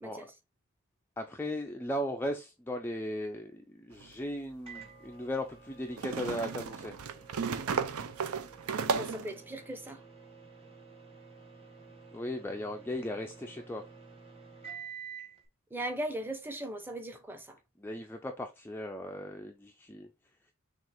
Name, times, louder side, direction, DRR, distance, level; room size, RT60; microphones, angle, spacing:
voice 1, 1.2-6.9 12.1-13.8 17.8-20.1, left 1 dB, 10° left, 0.4 m, -37 dB
sound 1, 4.0-4.1 6.0-9.3, right 5 dB, 75° right, 0.5 m, -34 dB
Microwave oven, 4.7-15.4, right 6 dB, 25° right, 1.3 m, -50 dB
voice 2, 8.7-10.0 15.7-17.6, right 1 dB, 10° right, 0.7 m, -38 dB
6.2 x 2.4 x 3.4 m
head